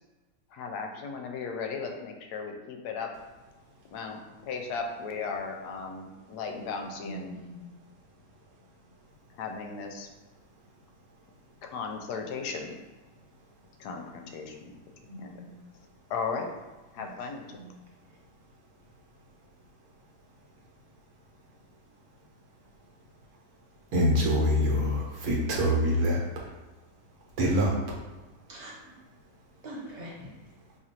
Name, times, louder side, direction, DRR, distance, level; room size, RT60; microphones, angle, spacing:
voice 1, 0.5-3.1 3.9-7.3 9.4-10.1 11.6-12.7 13.8-14.7 15.2-15.3 16.1-16.5 16.9-17.6, left 5 dB, 75° left, 3 dB, 1.1 m, -36 dB
voice 2, 7.0-7.8 15.1-15.6 16.9-17.1 17.5-17.7 28.5-28.7 29.6-30.3, right 1 dB, 40° right, -5 dB, 1.0 m, -43 dB
voice 3, 23.9-26.5 27.4-28.0, equal, 65° right, -2 dB, 1.2 m, -25 dB
2.9 x 2.5 x 4.2 m, 1.2 s
omnidirectional pair, 1.8 m